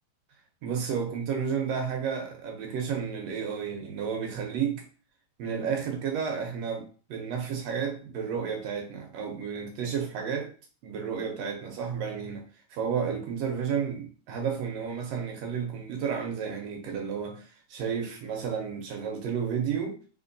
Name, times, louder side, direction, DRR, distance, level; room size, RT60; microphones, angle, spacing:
voice 1, 0.6-4.8 5.4-10.5 10.8-12.4 12.7-20.0, right 7 dB, 75° right, 1.5 m, -32 dB
4.4 x 2.8 x 2.5 m
omnidirectional pair, 3.4 m